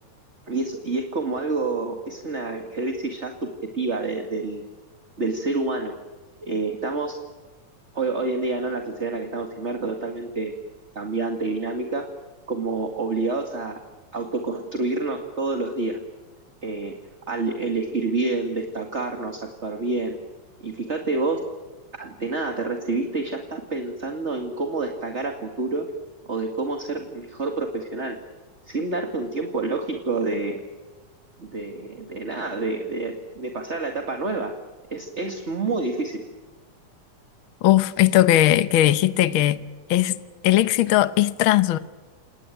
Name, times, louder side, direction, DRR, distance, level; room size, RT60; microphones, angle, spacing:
voice 1, 0.5-4.6 5.2-5.9 6.4-7.2 7.9-10.5 11.0-12.1 12.5-13.8 14.1-16.0 16.6-16.9 17.3-20.2 20.6-21.4 22.0-25.9 26.3-28.2 28.7-30.6 31.4-34.5 34.9-36.2, right 3 dB, 25° right, 2.0 m, -28 dB
voice 2, 37.6-39.6 39.9-40.2 40.4-41.8, left 13 dB, 80° left, 1.1 m, -18 dB
28.5 x 19.0 x 9.2 m
omnidirectional pair, 3.6 m